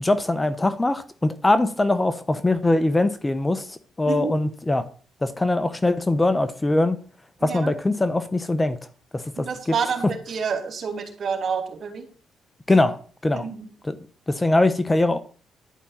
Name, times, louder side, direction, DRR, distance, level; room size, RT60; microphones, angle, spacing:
voice 1, 0.0-4.9 5.2-7.0 7.4-8.8 9.1-9.7 12.7-13.0 13.2-13.5 13.8-14.0 14.3-15.2, left 2 dB, 15° left, 0.9 m, -22 dB
voice 2, 7.4-7.7 9.4-12.1 13.3-13.6, right 6 dB, 55° right, 2.8 m, -28 dB
11.0 x 5.3 x 7.3 m
cardioid pair, 90°, 0 cm